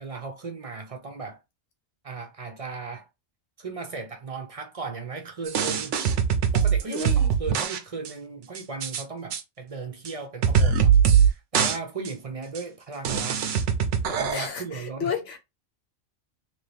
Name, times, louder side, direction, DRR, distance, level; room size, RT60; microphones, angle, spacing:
voice 1, 0.0-1.4 2.0-3.1 3.6-6.0 6.5-13.4 14.0-15.1, right 4 dB, 40° right, 0.6 m, -36 dB
sound 1, 5.5-7.8 8.1-8.2 8.6-9.0 9.3-9.4 10.1-10.2 10.4-11.3 11.5-11.8 12.1-12.2 12.6-12.7 13.1-14.5, right 7 dB, 80° right, 1.0 m, -22 dB
voice 2, 6.9-7.3 14.3-15.4, left 6 dB, 80° left, 1.2 m, -32 dB
3.0 x 2.8 x 3.3 m
omnidirectional pair, 1.2 m